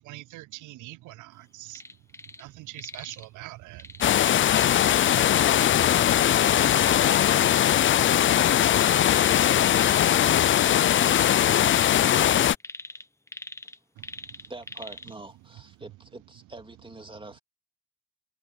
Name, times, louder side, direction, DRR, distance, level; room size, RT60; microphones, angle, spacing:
voice 1, 0.0-1.8 2.4-3.9 14.0-14.1, right 18 dB, 85° right, 0.5 m, -43 dB
sound 1, 1.7-2.4 2.7-3.3 3.8-5.2 6.4-7.3 8.7-10.2 10.5-15.1 15.6-15.7, left 2 dB, 10° left, 0.9 m, -42 dB
sound 2, 4.0-12.6, left 11 dB, 40° left, 0.4 m, -20 dB
voice 2, 14.3-17.4, right 2 dB, 15° right, 2.5 m, -44 dB
cardioid pair, 90°, 30 cm